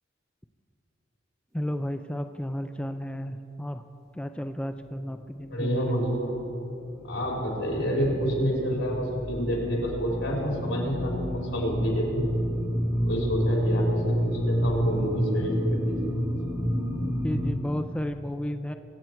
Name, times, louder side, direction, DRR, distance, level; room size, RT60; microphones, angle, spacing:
voice 1, 1.5-3.8 4.1-5.8 17.0-18.7, equal, 5° left, 7 dB, 0.3 m, -33 dB
sound 1, 4.8-5.2 5.5-17.5, equal, 15° right, 2.0 m, -29 dB
voice 2, 5.5-6.4 7.0-12.3 13.0-16.1, equal, 80° left, -2 dB, 3.4 m, -28 dB
22.5 x 8.0 x 4.5 m, 3.0 s
head